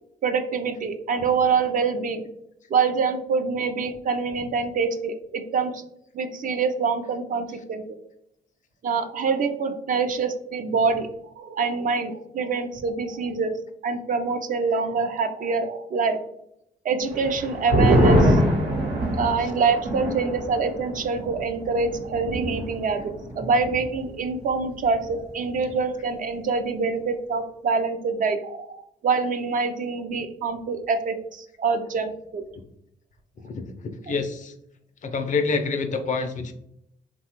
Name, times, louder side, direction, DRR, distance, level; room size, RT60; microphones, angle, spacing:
voice 1, 0.2-2.2 2.7-5.8 6.1-8.0 8.8-11.1 11.4-13.5 13.8-16.2 16.8-18.4 19.1-28.7 29.0-32.4 34.1-34.2, right 4 dB, 50° right, 7 dB, 0.4 m, -25 dB
sound 1, 17.1-24.1 24.3-24.4 24.8-25.3, equal, 80° right, 0.9 m, -24 dB
voice 2, 34.1-34.5 35.0-36.5, left 4 dB, 45° left, 8 dB, 0.4 m, -26 dB
2.9 x 2.2 x 2.8 m, 0.76 s
supercardioid pair, 65°, 17 cm